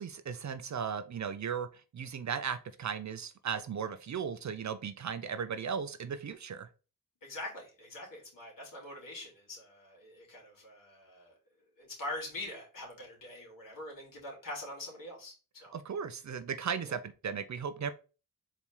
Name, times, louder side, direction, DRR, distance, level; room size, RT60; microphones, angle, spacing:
voice 1, 0.0-1.7 1.9-6.7 15.7-17.9, right 7 dB, 50° right, 11 dB, 0.5 m, -36 dB
voice 2, 7.2-11.3 11.8-15.7 16.9-17.0, left 1 dB, 60° left, -1 dB, 2.4 m, -44 dB
4.2 x 3.0 x 3.6 m, 0.33 s
cardioid pair, 55°, 37 cm